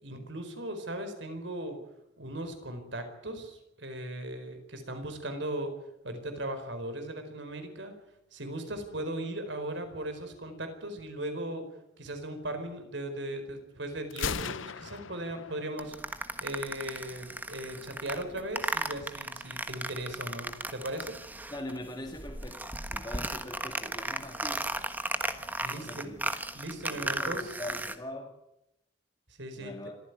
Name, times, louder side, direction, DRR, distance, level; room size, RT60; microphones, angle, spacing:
voice 1, 0.0-1.8 2.2-5.7 6.0-8.0 8.3-21.2 25.6-26.2 26.5-27.5 29.3-29.7, right 1 dB, 65° right, 8 dB, 4.6 m, -38 dB
Gunshot gunfire, 14.1-16.1, left 6 dB, 80° left, 0.8 m, -37 dB
sound 1, 15.8-21.8 22.1-28.0, right 2 dB, 10° right, 1.3 m, -36 dB
voice 2, 21.5-24.7 25.7-26.2 26.8-28.4 29.6-30.0, left 1 dB, 20° left, 1 dB, 2.1 m, -42 dB
26.0 x 15.0 x 9.4 m, 0.86 s
head